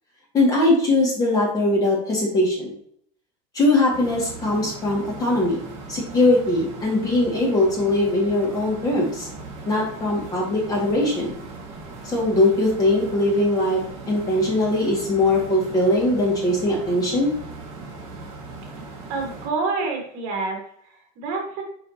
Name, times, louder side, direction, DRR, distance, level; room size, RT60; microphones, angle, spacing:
voice 1, 0.3-2.7 3.5-5.6 5.9-9.3 9.7-11.3 12.0-17.3, left 1 dB, 20° left, -2 dB, 2.0 m, -21 dB
sound 1, 3.9-19.5, right 3 dB, 35° right, 1.6 m, -39 dB
voice 2, 19.1-21.6, right 3 dB, 55° right, 2 dB, 1.7 m, -28 dB
6.0 x 5.4 x 2.8 m, 0.67 s
cardioid pair, 165°, 17 cm